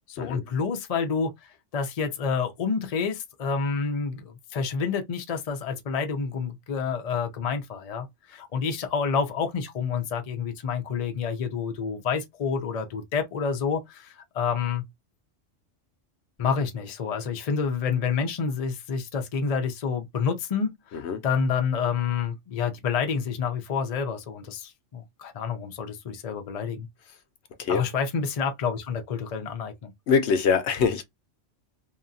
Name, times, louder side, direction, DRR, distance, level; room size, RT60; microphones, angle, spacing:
voice 1, 0.1-14.8 16.4-26.9 27.7-29.9, left 6 dB, 50° left, 0.4 m, -28 dB
voice 2, 20.9-21.2 27.6-27.8 30.1-31.0, left 5 dB, 70° left, 0.8 m, -24 dB
2.8 x 2.3 x 2.5 m
omnidirectional pair, 1.2 m